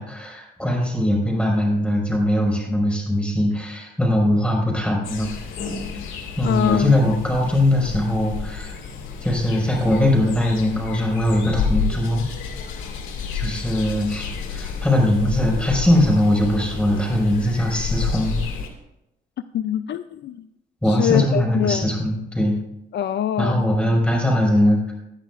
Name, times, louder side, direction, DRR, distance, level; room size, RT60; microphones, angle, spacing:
voice 1, 0.0-5.3 6.4-8.8 9.2-12.3 13.3-18.4 20.8-22.5 23.4-24.9, left 1 dB, 5° left, -1 dB, 5.2 m, -21 dB
sound 1, 5.0-18.7, left 5 dB, 85° left, 2.1 m, -30 dB
voice 2, 6.4-7.0 19.5-20.5 20.8-21.9 22.9-23.7, left 10 dB, 60° left, 12 dB, 0.5 m, -23 dB
19.0 x 11.0 x 2.5 m, 0.88 s
cardioid pair, 90°, 20 cm